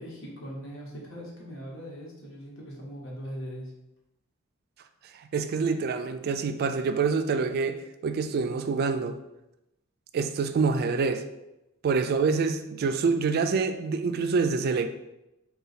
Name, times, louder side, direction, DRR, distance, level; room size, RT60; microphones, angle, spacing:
voice 1, 0.0-3.7, equal, 65° left, -2 dB, 1.1 m, -40 dB
voice 2, 5.3-9.2 10.1-11.2 11.8-14.9, right 4 dB, 50° right, 8 dB, 0.3 m, -26 dB
3.8 x 2.3 x 4.1 m, 0.92 s
head